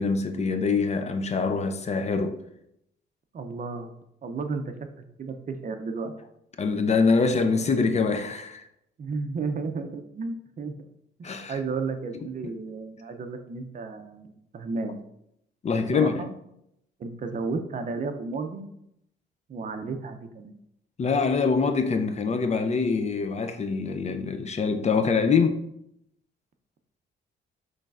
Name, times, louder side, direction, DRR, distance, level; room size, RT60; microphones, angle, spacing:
voice 1, 0.0-2.4 6.6-8.7 11.2-11.6 12.1-12.5 15.6-16.1 21.0-25.6, left 4 dB, 35° left, 0.4 m, -24 dB
voice 2, 3.3-3.9 4.2-6.1 9.0-10.7 11.2-15.0 15.9-16.3 17.0-18.7 19.5-20.5, right 4 dB, 40° right, 0.5 m, -33 dB
6.3 x 3.3 x 2.4 m
cardioid pair, 90°, 20 cm